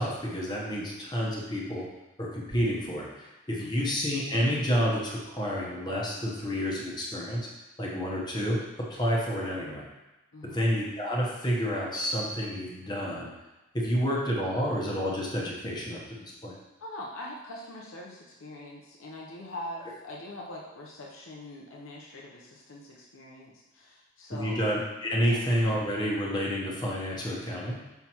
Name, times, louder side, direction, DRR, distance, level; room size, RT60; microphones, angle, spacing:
voice 1, 0.0-1.9 2.2-7.5 7.8-8.6 8.9-9.8 10.4-13.3 13.7-16.5 24.3-27.8, equal, 20° left, -3 dB, 1.0 m, -29 dB
voice 2, 3.6-3.9 10.3-10.6 16.8-24.6 25.2-25.4, left 1 dB, 80° left, -2 dB, 0.8 m, -43 dB
5.8 x 5.7 x 3.0 m, 1.0 s
head